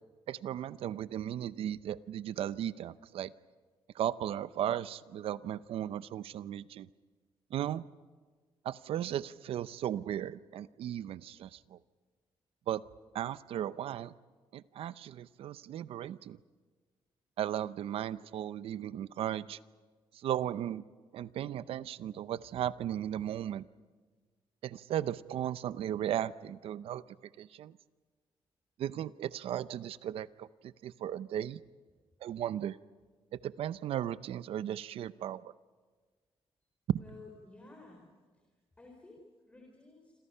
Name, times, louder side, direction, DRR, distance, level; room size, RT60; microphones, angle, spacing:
voice 1, 0.3-3.3 3.9-6.9 7.5-7.8 8.6-11.8 12.7-12.8 13.1-14.1 14.5-16.4 17.4-19.6 20.1-20.8 21.1-23.6 24.6-27.8 28.8-31.6 32.2-32.8 33.3-35.5, right 11 dB, 75° right, 16 dB, 0.6 m, -36 dB
voice 2, 37.0-38.0 38.3-38.4 38.8-40.1, left 3 dB, 15° left, 0 dB, 4.2 m, -54 dB
27.0 x 27.0 x 5.6 m, 1.4 s
cardioid pair, 155°, 10 cm